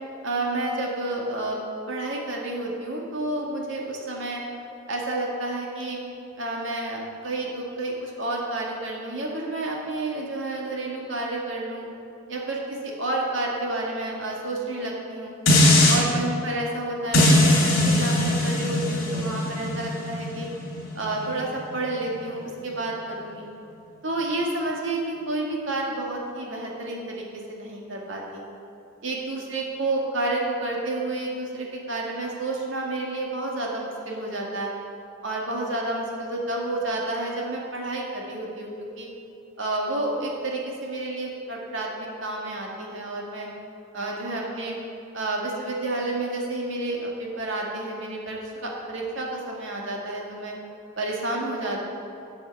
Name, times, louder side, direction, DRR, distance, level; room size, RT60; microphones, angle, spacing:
voice 1, 0.2-1.6 1.9-4.4 4.9-6.0 6.4-11.9 12.3-15.3 15.9-20.5 21.0-23.4 24.0-28.4 29.0-34.7 35.2-38.7 39.0-39.1 39.6-43.5 43.9-44.7 45.1-50.5 51.0-51.8, right 2 dB, 65° right, -2 dB, 2.0 m, -30 dB
sound 1, 15.5-16.0 17.1-22.3 22.7-22.8, left 1 dB, 70° left, 2.6 m, -21 dB
8.2 x 7.9 x 7.2 m, 2.7 s
head